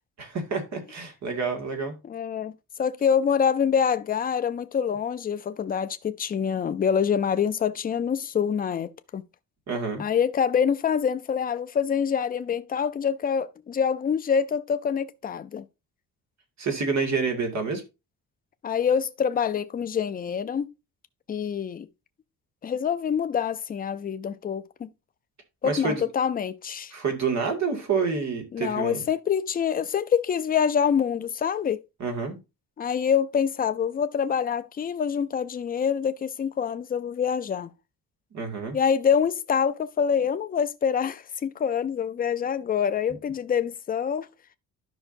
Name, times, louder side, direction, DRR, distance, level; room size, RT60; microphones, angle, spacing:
voice 1, 0.2-2.0 9.7-10.0 16.6-17.8 25.6-26.0 26.9-29.0 32.0-32.4 38.3-38.8, right 5 dB, 50° right, 2.1 m, -28 dB
voice 2, 2.0-2.5 2.8-9.2 10.0-15.6 18.6-20.7 21.3-21.9 22.6-24.9 25.6-26.9 28.5-31.8 32.8-37.7 38.7-44.3, left 7 dB, 25° left, 0.4 m, -26 dB
12.0 x 5.6 x 2.6 m
cardioid pair, 160°, 35 cm